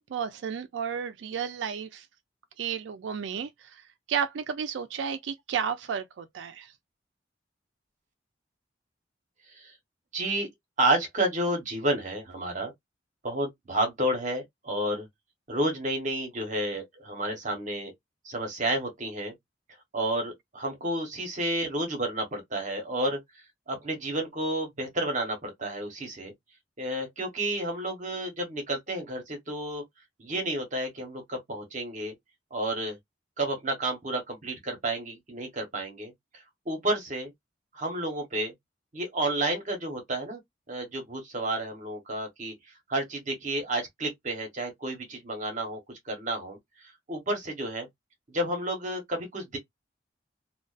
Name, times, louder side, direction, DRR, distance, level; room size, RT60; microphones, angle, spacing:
voice 1, 0.0-2.1 2.6-6.7, right 7 dB, 85° right, 0.3 m, -33 dB
voice 2, 10.1-10.5 10.8-12.7 13.2-15.1 15.5-17.9 18.2-19.3 19.9-23.2 23.7-26.3 26.8-29.8 30.2-32.1 32.5-33.0 33.4-36.1 36.7-37.3 37.7-38.5 38.9-40.4 40.7-42.5 42.9-45.8 46.1-46.6 47.1-47.9 48.3-49.6, right 1 dB, 45° right, 1.0 m, -30 dB
2.4 x 2.2 x 2.3 m
head